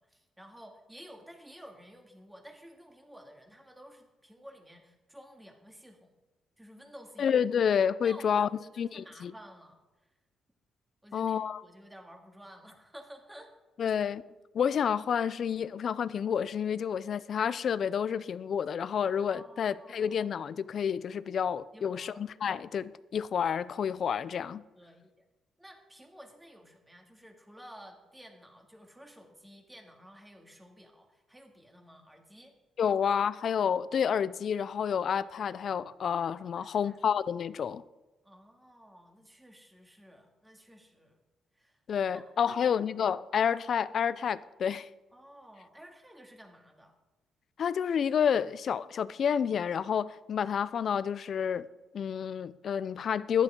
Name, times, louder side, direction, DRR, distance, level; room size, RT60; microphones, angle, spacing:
voice 1, 0.0-6.1 6.6-7.7 8.0-9.8 11.0-13.5 19.1-20.3 21.7-22.2 24.7-25.1 25.6-32.5 32.9-33.0 36.6-37.0 38.2-41.2 41.5-41.8 42.1-42.8 45.1-46.9, equal, 10° right, 2.3 m, -53 dB
voice 2, 7.2-8.5 8.8-9.3 11.1-11.6 13.8-14.2 14.5-24.6 32.8-37.8 41.9-44.9 47.6-51.7 51.9-53.4, left 7 dB, 55° left, 0.5 m, -29 dB
14.5 x 11.5 x 3.8 m
cardioid pair, 90°, 0 cm